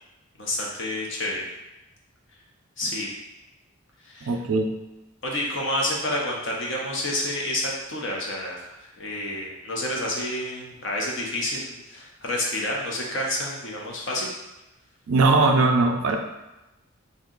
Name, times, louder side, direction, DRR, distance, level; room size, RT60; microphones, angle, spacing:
voice 1, 0.4-1.4 2.8-3.1 4.0-4.4 5.2-14.3, left 1 dB, 55° left, -2 dB, 0.6 m, -29 dB
voice 2, 4.2-4.7 15.1-16.2, right 3 dB, 70° right, 4 dB, 0.4 m, -20 dB
2.7 x 2.3 x 3.7 m, 0.99 s
head